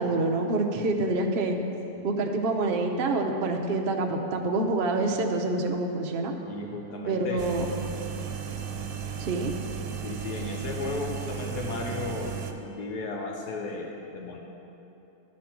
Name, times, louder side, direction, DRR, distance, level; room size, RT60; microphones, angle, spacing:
voice 1, 0.0-1.6 2.0-6.3 7.1-7.6 9.2-9.5, right 2 dB, 55° right, 3 dB, 0.6 m, -27 dB
voice 2, 6.4-7.4 10.0-14.4, left 3 dB, 80° left, 0 dB, 1.4 m, -35 dB
sound 1, 7.4-12.5, right 7 dB, 75° right, 1.1 m, -35 dB
12.0 x 4.3 x 5.9 m, 3.0 s
omnidirectional pair, 1.7 m